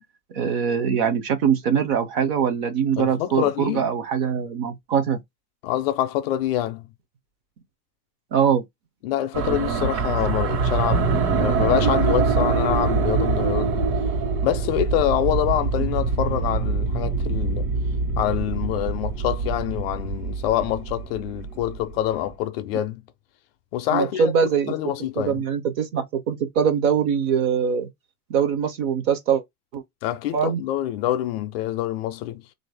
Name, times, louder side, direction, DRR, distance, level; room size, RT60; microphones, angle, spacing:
voice 1, 0.3-5.2 8.3-8.6 23.9-27.9 28.3-29.4 29.7-29.8 30.3-30.6, right 7 dB, 30° right, 0.5 m, -22 dB
voice 2, 3.0-3.9 5.6-6.8 9.0-13.9 14.4-17.7 18.2-23.0 23.7-25.4 30.0-32.4, left 12 dB, 45° left, 0.4 m, -26 dB
sound 1, 9.3-21.9, right 4 dB, 65° right, 1.3 m, -24 dB
3.8 x 2.6 x 3.2 m
supercardioid pair, 165°, 44 cm